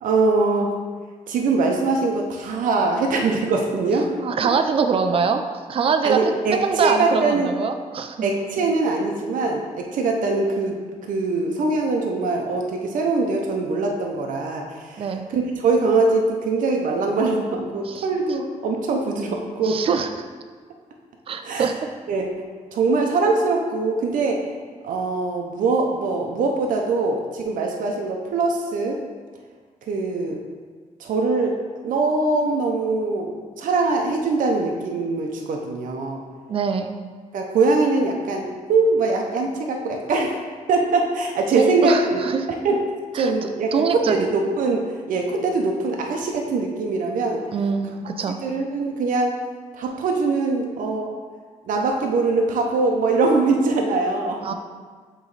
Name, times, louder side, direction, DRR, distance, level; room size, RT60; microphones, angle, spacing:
voice 1, 0.0-0.7 1.3-4.1 6.0-7.5 8.2-10.8 11.1-19.8 21.4-21.7 22.1-22.3 22.7-24.4 24.8-29.0 29.9-30.4 31.0-31.6 31.8-36.2 37.3-40.4 40.7-42.2 42.6-42.8 43.1-47.4 48.4-49.3 49.7-51.1 51.7-54.5, right 3 dB, 90° right, 1 dB, 0.7 m, -22 dB
voice 2, 4.2-5.4 5.7-6.2 6.5-8.2 15.0-15.3 17.9-18.1 19.6-20.2 21.3-21.7 36.5-36.9 41.5-42.5 43.2-43.3 43.7-44.3 47.5-48.4 54.4-54.5, right 5 dB, 45° right, 7 dB, 0.4 m, -23 dB
8.0 x 3.1 x 4.0 m, 1.5 s
wide cardioid pair, 140°, 13 cm